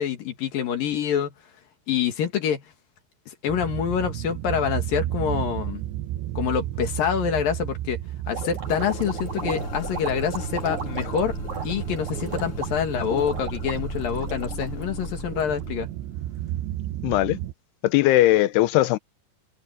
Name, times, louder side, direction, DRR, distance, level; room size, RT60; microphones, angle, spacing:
voice 1, 0.0-1.3 1.9-2.6 3.3-5.8 6.3-8.0 8.3-11.3 11.6-15.9, left 8 dB, 60° left, 3.3 m, -26 dB
sound 1, 3.5-17.5, right 14 dB, 85° right, 3.0 m, -33 dB
sound 2, 8.3-15.6, right 4 dB, 40° right, 5.5 m, -37 dB
sound 3, 8.6-16.6, left 2 dB, 30° left, 5.4 m, -37 dB
voice 2, 17.0-17.4 17.8-19.0, left 16 dB, 75° left, 2.6 m, -19 dB
omnidirectional pair, 5.1 m